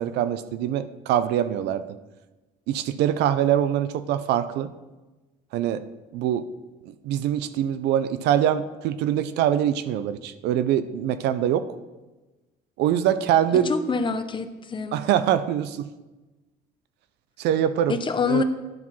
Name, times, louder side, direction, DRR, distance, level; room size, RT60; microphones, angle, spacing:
voice 1, 0.0-1.8 2.7-4.7 5.5-5.8 6.1-6.5 6.9-11.7 12.8-13.7 14.9-15.9 17.4-18.0 18.3-18.4, right 10 dB, 85° right, 13 dB, 0.5 m, -23 dB
voice 2, 13.6-15.0 17.9-18.4, left 4 dB, 30° left, 9 dB, 0.7 m, -26 dB
10.5 x 4.6 x 5.6 m, 1.1 s
cardioid pair, 110°, 17 cm